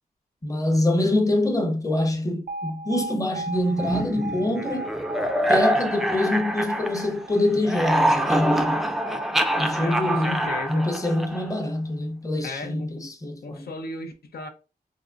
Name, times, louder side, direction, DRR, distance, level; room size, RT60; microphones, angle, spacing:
voice 1, 0.4-4.9 5.5-8.9 9.6-10.4 10.7-13.7, left 1 dB, 20° left, 0.7 m, -25 dB
Alarm, 2.5-10.5, right 2 dB, 75° right, 0.5 m, -38 dB
sound 1, 3.8-7.3 7.6-11.6, right 1 dB, ahead, 0.3 m, -25 dB
voice 2, 9.8-10.9 12.4-13.1 13.4-14.5, left 3 dB, 90° left, 0.6 m, -35 dB
3.6 x 2.9 x 2.4 m
wide cardioid pair, 120°, 15 cm